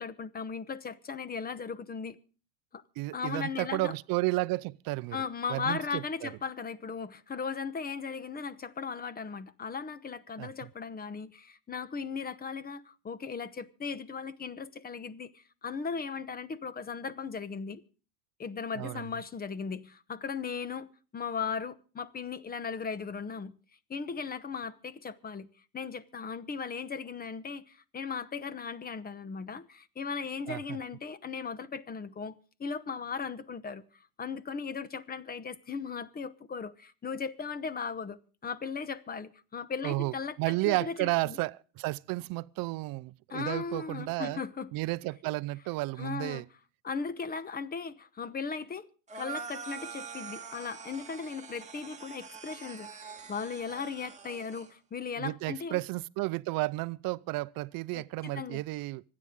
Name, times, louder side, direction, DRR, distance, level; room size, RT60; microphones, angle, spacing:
voice 1, 0.0-2.2 2.7-2.8 3.1-3.9 5.1-17.8 18.4-20.9 21.1-23.5 23.9-25.5 25.7-33.9 34.2-40.4 40.6-41.4 43.3-44.7 46.0-46.4 46.8-48.9 49.1-55.8 57.9-58.6, left 5 dB, 20° left, 1.0 m, -37 dB
voice 2, 3.0-5.2 5.5-6.3 10.4-10.5 18.8-19.0 30.5-30.8 39.8-44.4 44.7-46.4 55.2-59.0, right 21 dB, 50° right, 0.6 m, -32 dB
sound 1, 49.1-54.7, right 6 dB, 15° right, 1.9 m, -44 dB
25.5 x 9.7 x 3.7 m
supercardioid pair, 105°, 45 cm